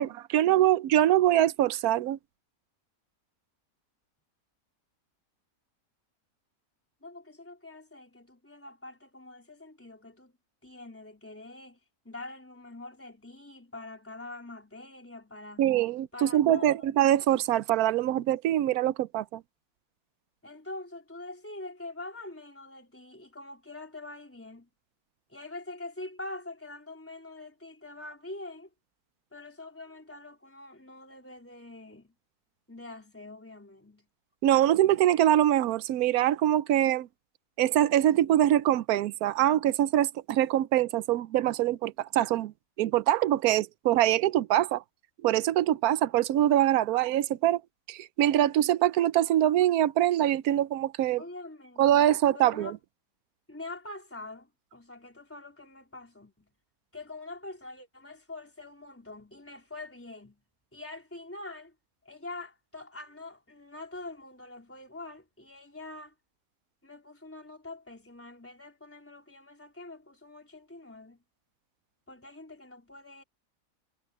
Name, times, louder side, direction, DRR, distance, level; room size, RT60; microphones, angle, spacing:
voice 1, 0.0-2.2 15.6-19.4 34.4-37.1 37.6-44.8 45.2-47.6 47.9-51.2 51.8-52.8, right 12 dB, 90° right, 1.1 m, -24 dB
voice 2, 7.0-10.3 10.6-11.8 12.0-15.7 16.1-16.9 20.4-24.7 25.3-28.7 29.3-32.1 32.7-34.1 51.2-51.9 52.3-52.7 53.5-56.5 56.9-60.4 60.7-61.7 62.0-66.1 66.8-71.2 72.1-73.2, left 2 dB, 10° left, 3.9 m, -44 dB
omnidirectional pair, 1.5 m